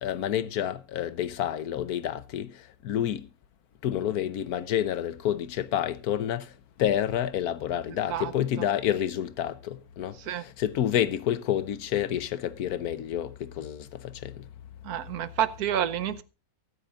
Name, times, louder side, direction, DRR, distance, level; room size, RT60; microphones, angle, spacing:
voice 1, 0.0-2.5 2.8-3.3 3.8-6.5 6.8-14.4, left 10 dB, 75° left, 1.3 m, -29 dB
voice 2, 14.8-16.2, right 10 dB, 75° right, 1.3 m, -28 dB
24.0 x 8.1 x 2.4 m
omnidirectional pair, 1.6 m